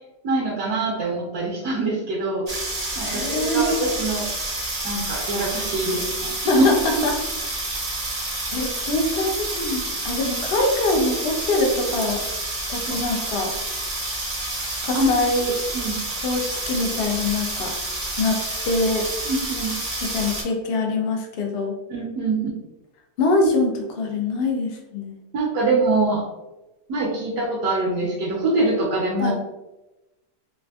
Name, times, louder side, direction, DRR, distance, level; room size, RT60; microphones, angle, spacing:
voice 1, 0.2-2.6 3.0-4.3 4.8-6.7 14.9-15.1 15.7-16.0 19.3-19.7 21.9-22.4 25.3-26.2 26.9-29.3, right 2 dB, 70° right, -4 dB, 1.0 m, -24 dB
sound 1, 2.5-20.4, right 2 dB, 45° right, 0.5 m, -29 dB
voice 2, 3.0-3.6 6.5-7.2 8.5-12.2 12.7-13.5 14.8-15.5 16.2-17.7 18.2-19.0 20.0-21.8 23.2-23.7 24.0-25.1 29.2-29.3, left 2 dB, 75° left, 1 dB, 0.5 m, -24 dB
3.4 x 2.4 x 2.3 m, 1.0 s
omnidirectional pair, 1.7 m